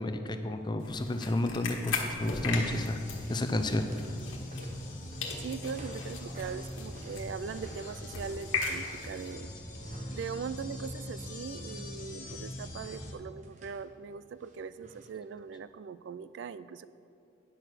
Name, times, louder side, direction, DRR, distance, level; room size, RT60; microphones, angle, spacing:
voice 1, 0.0-3.0 3.3-3.9, left 1 dB, 20° left, 7 dB, 0.6 m, -31 dB
sound 1, 0.8-5.0 5.2-9.3, left 4 dB, 75° left, 1.4 m, -38 dB
sound 2, 1.1-1.5 1.8-2.1 2.4-11.3 11.6-13.9 14.4-15.2 15.5-15.6, right 1 dB, 40° right, 0.9 m, -52 dB
sound 3, 2.2-13.1, left 1 dB, 40° left, 1.8 m, -42 dB
voice 2, 5.4-9.5 10.1-16.9, right 6 dB, 65° right, 14 dB, 0.3 m, -40 dB
9.9 x 6.7 x 6.1 m, 2.7 s
head